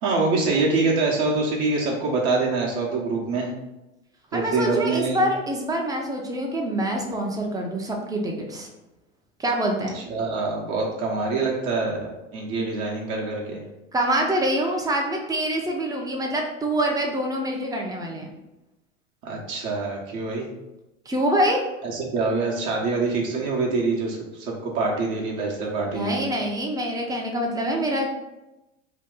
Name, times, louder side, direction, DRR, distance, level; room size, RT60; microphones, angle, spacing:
voice 1, 0.0-3.5 4.3-5.2 9.9-13.6 19.2-20.5 21.8-26.3, right 3 dB, 50° right, -2 dB, 0.9 m, -25 dB
voice 2, 4.3-8.7 9.4-10.0 13.9-18.3 21.1-21.6 25.9-28.1, right 1 dB, 10° right, 1 dB, 0.5 m, -25 dB
2.8 x 2.3 x 3.6 m, 0.96 s
hypercardioid pair, 95°, 38 cm